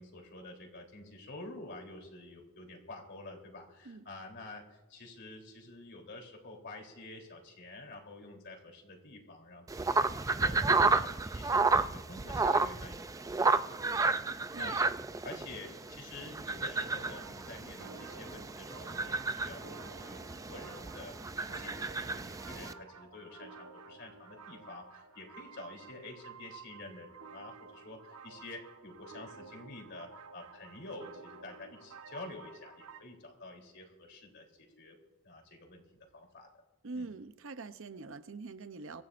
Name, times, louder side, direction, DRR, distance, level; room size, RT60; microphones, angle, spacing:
voice 1, 0.0-14.8 15.2-19.6 19.9-35.0 35.2-35.8 36.1-36.5 36.9-37.0, left 2 dB, 50° left, 1 dB, 3.5 m, -49 dB
sound 1, 9.7-22.7, right 3 dB, 15° right, 0.3 m, -32 dB
sound 2, 17.0-33.0, right 4 dB, 80° right, 1.0 m, -52 dB
voice 2, 36.8-39.0, right 3 dB, 60° right, 11 dB, 0.7 m, -44 dB
25.0 x 14.0 x 2.6 m, 1.1 s
head